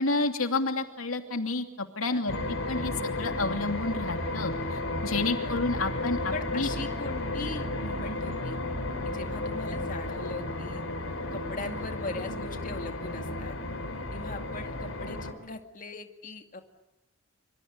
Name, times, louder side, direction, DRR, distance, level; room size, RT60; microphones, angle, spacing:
voice 1, 0.0-2.4 2.7-6.7, left 3 dB, 90° left, 5 dB, 2.8 m, -30 dB
sound 1, 2.3-15.3, left 2 dB, 70° left, 5.1 m, -33 dB
voice 2, 5.1-5.6 6.3-8.6 9.0-10.8 11.3-13.6 14.1-16.6, left 2 dB, 40° left, 5 dB, 2.3 m, -40 dB
26.0 x 26.0 x 8.8 m, 0.93 s
head